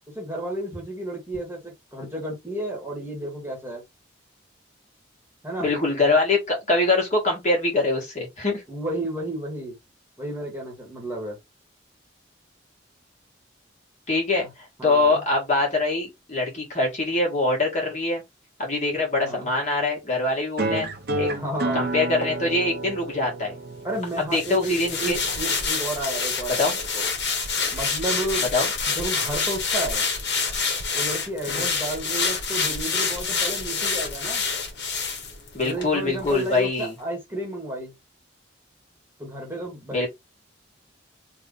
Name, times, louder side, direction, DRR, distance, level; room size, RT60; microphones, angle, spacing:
voice 1, 0.1-3.8 5.4-5.7 8.7-9.7 10.2-11.4 14.4-14.5 14.8-15.2 19.2-19.5 21.3-21.9 23.8-27.1 27.7-28.5 28.9-30.0 30.9-34.4 35.6-37.9 39.2-40.1, right 1 dB, 10° right, 1.5 m, -32 dB
voice 2, 5.6-8.6 14.1-18.2 18.6-20.9 21.2-21.3 21.7-23.5 24.3-25.2 26.6-26.7 28.5-28.7 31.5-31.6 35.5-36.9 39.9-40.1, left 2 dB, 40° left, 1.7 m, -23 dB
sound 1, 20.6-25.6, right 2 dB, 55° right, 0.6 m, -31 dB
sound 2, 24.3-35.9 36.2-36.4, left 5 dB, 60° left, 1.4 m, -27 dB
3.4 x 2.6 x 3.8 m
head